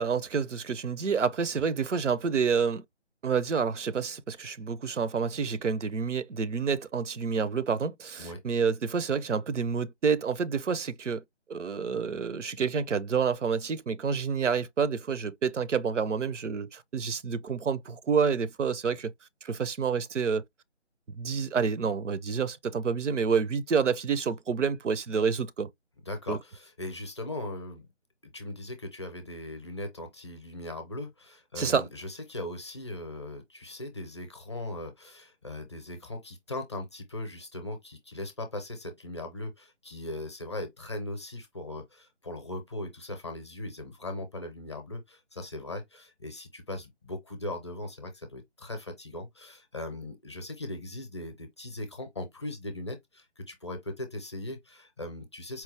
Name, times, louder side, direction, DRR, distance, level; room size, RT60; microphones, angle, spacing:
voice 1, 0.0-2.8 3.2-11.2 11.5-19.1 19.4-20.4 21.1-25.7 26.3-26.4 31.6-31.9, right 6 dB, 85° right, 0.6 m, -28 dB
voice 2, 26.1-27.9 28.3-55.6, left 1 dB, 25° left, 0.6 m, -39 dB
4.5 x 2.0 x 3.2 m
figure-of-eight pair, 150°, 35 cm